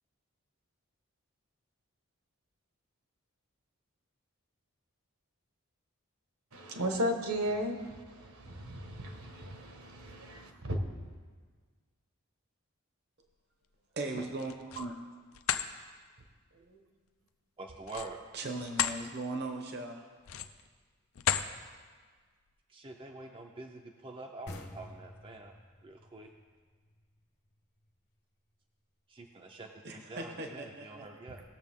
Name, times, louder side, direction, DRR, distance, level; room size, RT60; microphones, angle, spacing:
voice 1, 6.5-10.8 16.7-16.8, equal, 75° right, 4 dB, 1.4 m, -35 dB
voice 2, 14.0-14.9 18.3-20.0 29.8-31.0, right 2 dB, 45° right, 3 dB, 0.9 m, -38 dB
sound 1, 14.3-14.9 15.3-15.7 17.8-19.0 19.5-19.6 20.2-20.7 21.2-21.5, left 9 dB, 70° left, 0.5 m, -33 dB
voice 3, 17.6-18.2 22.7-25.5 25.8-26.3 29.1-31.4, right 2 dB, 25° right, 2 dB, 0.5 m, -46 dB
sound 2, 24.5-27.9, left 1 dB, 50° left, 1.1 m, -49 dB
19.0 x 7.0 x 3.6 m, 1.5 s
head